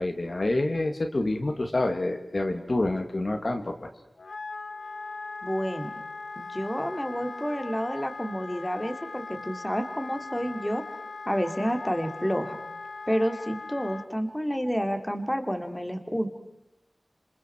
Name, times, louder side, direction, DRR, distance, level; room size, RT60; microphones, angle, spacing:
voice 1, 0.0-3.9, left 2 dB, 55° left, 6 dB, 2.2 m, -27 dB
Wind instrument woodwind instrument, 4.2-14.1, left 3 dB, 85° left, 0.9 m, -40 dB
voice 2, 5.4-5.9 6.4-10.8 11.3-12.5 13.1-16.3, equal, 10° left, 7 dB, 2.7 m, -29 dB
28.0 x 27.0 x 4.6 m, 0.89 s
wide cardioid pair, 60°, 0 cm